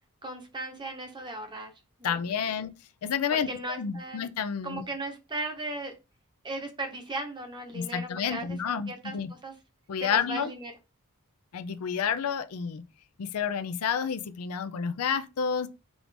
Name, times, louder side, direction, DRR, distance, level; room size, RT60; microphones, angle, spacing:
voice 1, 0.2-1.7 2.0-2.2 2.4-2.5 3.3-4.3 4.6-5.9 6.4-9.5 10.0-10.7, right 2 dB, 20° right, 0.9 m, -37 dB
voice 2, 2.0-2.7 3.0-3.5 3.8-4.8 7.7-9.3 9.9-10.5 11.5-12.8 13.2-15.7, left 7 dB, 85° left, 0.4 m, -30 dB
4.8 x 2.5 x 3.4 m
head